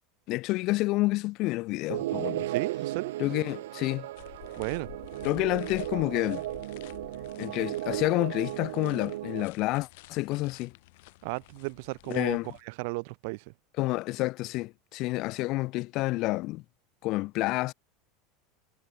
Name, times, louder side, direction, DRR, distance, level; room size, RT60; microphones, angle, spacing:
voice 1, 0.3-2.5 3.2-4.1 5.2-6.4 7.4-10.7 12.1-12.5 13.8-16.6 17.0-17.7, left 20 dB, 50° left, 0.5 m, -29 dB
sound 1, 1.9-9.4, right 15 dB, 90° right, 1.4 m, -35 dB
voice 2, 2.5-3.1 4.6-4.9 11.2-13.5, right 29 dB, 65° right, 1.1 m, -34 dB
sound 2, 4.2-12.6, left 23 dB, 70° left, 7.7 m, -51 dB
supercardioid pair, 135°, 0 cm